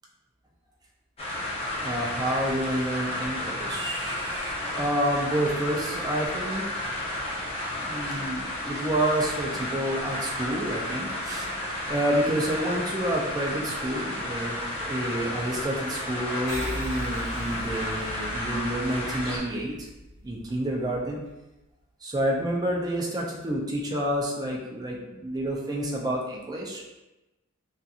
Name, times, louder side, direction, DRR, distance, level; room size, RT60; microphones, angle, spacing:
sound 1, 1.2-19.4, left 1 dB, 25° left, 0.6 m, -32 dB
voice 1, 1.8-6.6 7.7-11.5 11.9-19.9 20.2-21.2 22.0-26.8, right 1 dB, 20° right, -1 dB, 0.4 m, -29 dB
sound 2, 16.5-21.3, equal, 65° left, 1.0 m, -39 dB
2.4 x 2.4 x 2.7 m, 1.0 s
head